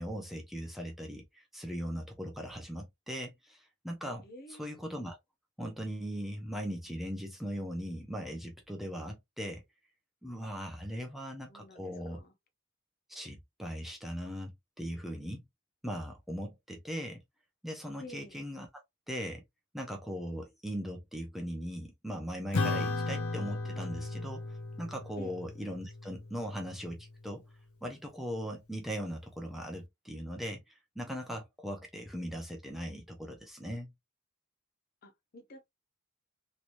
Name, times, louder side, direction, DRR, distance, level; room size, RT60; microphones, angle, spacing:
voice 1, 0.0-4.2 4.6-5.2 5.6-9.6 10.2-12.2 13.1-15.4 15.8-17.2 17.6-18.7 19.1-19.4 19.7-27.4 27.8-33.9, equal, ahead, 0.6 m, -39 dB
voice 2, 4.2-4.7 11.5-12.3 18.0-18.4 25.2-25.4 35.0-35.7, left 1 dB, 45° left, 0.7 m, -49 dB
Acoustic guitar / Strum, 22.5-27.3, left 3 dB, 90° left, 0.7 m, -36 dB
3.1 x 2.9 x 2.5 m
head